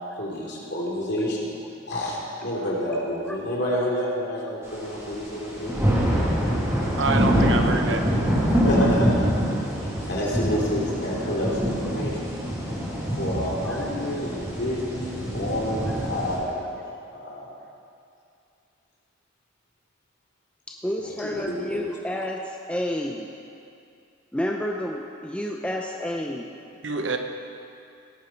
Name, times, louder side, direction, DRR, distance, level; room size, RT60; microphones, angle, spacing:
voice 1, 0.0-1.5 1.9-2.2 2.4-5.9 8.4-9.2 10.1-12.3 13.2-16.6 17.1-17.5 21.0-21.8, equal, 60° left, -5 dB, 3.0 m, -29 dB
sound 1, 5.0-5.1 5.3-16.4, equal, 15° right, 2.2 m, -25 dB
voice 2, 7.0-8.0 26.8-27.2, right 3 dB, 70° right, 5 dB, 0.9 m, -26 dB
voice 3, 20.7-23.3 24.3-26.5, left 1 dB, 5° left, 0 dB, 0.6 m, -30 dB
17.0 x 9.0 x 4.5 m, 2.5 s
head